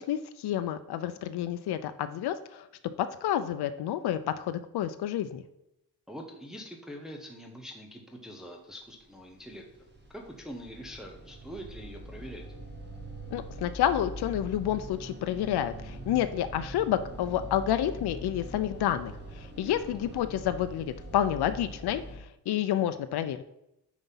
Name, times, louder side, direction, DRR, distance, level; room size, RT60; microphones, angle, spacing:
voice 1, 0.0-2.7 3.0-5.4 13.3-23.4, left 11 dB, 85° left, 10 dB, 0.6 m, -29 dB
voice 2, 6.1-9.9 10.1-12.4 19.6-19.9, equal, ahead, 1 dB, 0.9 m, -44 dB
sound 1, 9.0-22.2, equal, 30° right, 1.6 m, -43 dB
9.4 x 4.1 x 5.5 m, 0.85 s
wide cardioid pair, 165°, 38 cm